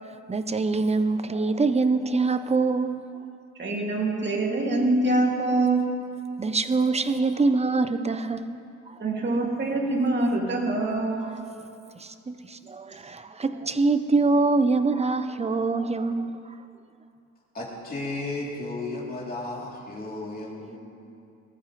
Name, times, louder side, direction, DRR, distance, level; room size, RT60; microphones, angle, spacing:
voice 1, 0.0-3.0 6.4-8.6 8.9-9.0 11.2-16.6, right 3 dB, 20° right, 11 dB, 0.7 m, -25 dB
voice 2, 3.6-5.8 9.0-11.3, right 2 dB, 35° right, 0 dB, 2.5 m, -24 dB
voice 3, 17.5-20.8, left 2 dB, 30° left, -4 dB, 3.3 m, -34 dB
19.5 x 13.5 x 3.3 m, 2.6 s
cardioid pair, 90°, 30 cm